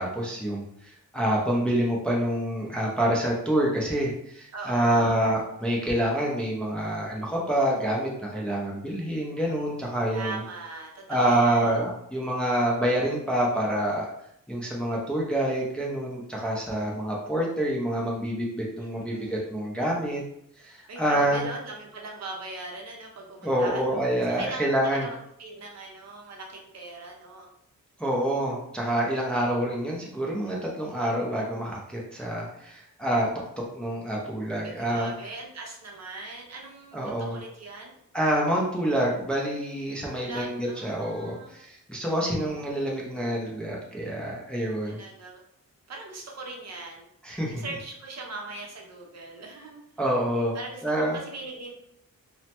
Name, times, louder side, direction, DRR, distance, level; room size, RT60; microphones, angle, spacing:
voice 1, 0.0-10.4 11.1-14.1 14.5-20.2 20.6-21.4 23.4-25.1 28.0-33.3 33.7-35.1 36.9-37.4 38.1-45.0 47.2-47.6 50.0-50.6 50.8-51.2, right 1 dB, 5° left, -3 dB, 0.5 m, -27 dB
voice 2, 4.5-5.3 10.1-11.8 18.8-19.5 20.9-27.5 34.6-37.9 40.1-41.6 42.2-42.8 44.8-45.4 45.9-47.1 47.6-49.8 50.5-51.7, right 3 dB, 50° right, 0 dB, 0.6 m, -40 dB
3.0 x 2.1 x 2.9 m, 0.73 s
wide cardioid pair, 140°, 33 cm